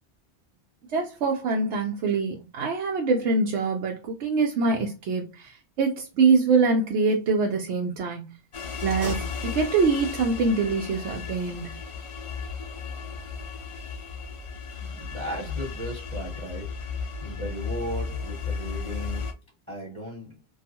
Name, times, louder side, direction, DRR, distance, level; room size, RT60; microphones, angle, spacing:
voice 1, 0.9-8.2 8.8-11.8, right 4 dB, 90° right, 0.9 m, -24 dB
sound 1, 8.5-19.3, left 5 dB, 50° left, 0.4 m, -34 dB
sound 2, 8.8-10.1, right 3 dB, 60° right, 0.9 m, -40 dB
voice 2, 14.7-16.9 17.2-19.3 19.7-20.4, right 1 dB, 15° right, 0.9 m, -36 dB
2.4 x 2.3 x 2.7 m
omnidirectional pair, 1.1 m